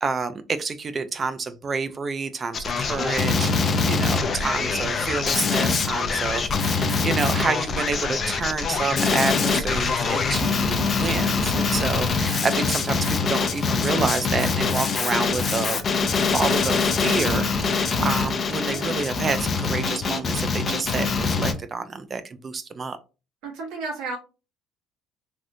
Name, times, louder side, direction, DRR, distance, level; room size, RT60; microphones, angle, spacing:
voice 1, 0.0-3.5 3.8-23.0, right 4 dB, 30° right, 11 dB, 0.3 m, -28 dB
Male speech man speaking, 2.5-21.5, left 4 dB, 35° left, 0.5 m, -24 dB
voice 2, 23.4-24.2, right 3 dB, 85° right, -1 dB, 1.4 m, -32 dB
3.4 x 2.5 x 2.6 m, 0.31 s
cardioid pair, 115°, 0 cm